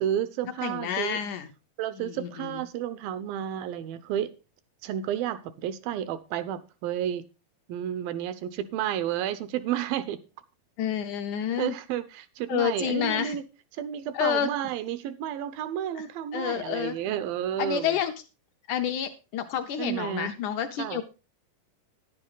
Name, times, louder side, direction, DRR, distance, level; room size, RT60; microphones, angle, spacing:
voice 1, 0.0-1.2 1.8-4.3 4.8-7.2 7.7-10.2 11.6-13.4 13.8-18.0 19.8-20.3 20.8-21.0, right 10 dB, 80° right, 2.6 m, -31 dB
voice 2, 0.6-1.5 2.0-2.6 10.8-11.8 12.5-13.4 14.1-14.5 16.0-16.1 16.3-17.0 17.6-18.1 18.7-21.0, left 9 dB, 75° left, 2.0 m, -29 dB
11.0 x 9.8 x 3.9 m
omnidirectional pair, 4.2 m